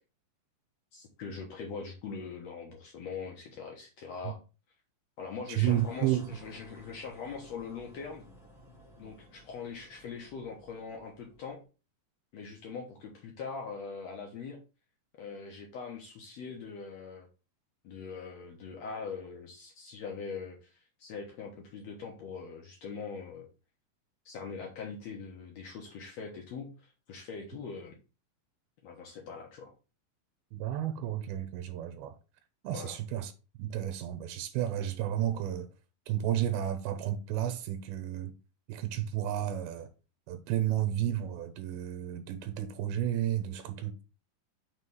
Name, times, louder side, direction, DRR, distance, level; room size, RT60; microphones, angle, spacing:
voice 1, 0.9-4.4 5.2-8.3 9.0-11.6 12.3-14.6 15.2-17.3 17.8-23.5 24.2-28.0 28.8-29.7 32.7-33.0, left 5 dB, 75° left, 1.5 m, -42 dB
voice 2, 5.5-6.3 30.5-32.1 32.6-33.3 33.6-35.7 36.1-38.3 38.7-39.9 40.3-44.0, right 11 dB, 80° right, 2.5 m, -32 dB
sound 1, 5.6-11.6, equal, 5° right, 0.5 m, -55 dB
6.2 x 3.1 x 5.3 m
omnidirectional pair, 4.5 m